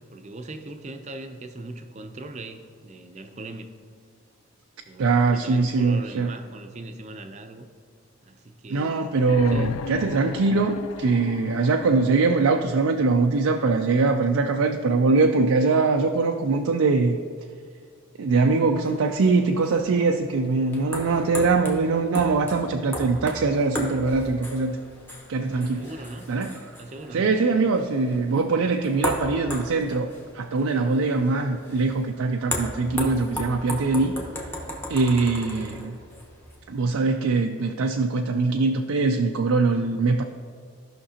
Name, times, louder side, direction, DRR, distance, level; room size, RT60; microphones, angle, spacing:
voice 1, 0.0-3.8 4.9-7.7 8.2-9.1 9.4-9.8 25.7-26.3 26.8-27.3, right 2 dB, 30° right, 6 dB, 0.5 m, -40 dB
voice 2, 5.0-6.3 8.7-17.2 18.2-24.8 25.3-25.8 26.3-26.5 27.1-34.1 34.9-36.0 36.7-40.2, right 3 dB, 80° right, 4 dB, 0.4 m, -22 dB
sound 1, 9.2-13.0 14.2-14.3, left 6 dB, 80° left, 0.3 m, -35 dB
sound 2, 18.8-36.6, equal, 10° left, 0.9 m, -36 dB
15.5 x 5.8 x 2.8 m, 2.1 s
head